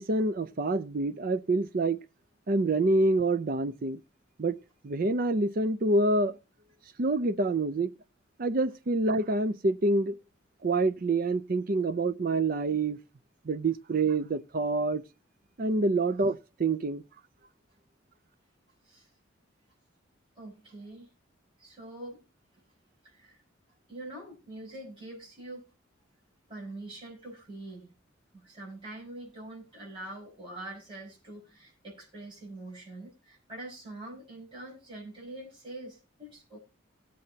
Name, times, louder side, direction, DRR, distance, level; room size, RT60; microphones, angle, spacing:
voice 1, 0.0-2.0 2.5-4.0 4.4-4.6 4.8-6.4 7.0-7.9 8.4-10.2 10.6-13.0 13.5-15.0 15.6-17.0, right 2 dB, 45° right, 0.5 m, -27 dB
voice 2, 20.4-21.1 21.6-22.2 23.0-23.4 23.9-25.7 26.5-27.9 28.3-36.6, right 2 dB, 25° right, 5.3 m, -44 dB
18.5 x 7.7 x 2.8 m
head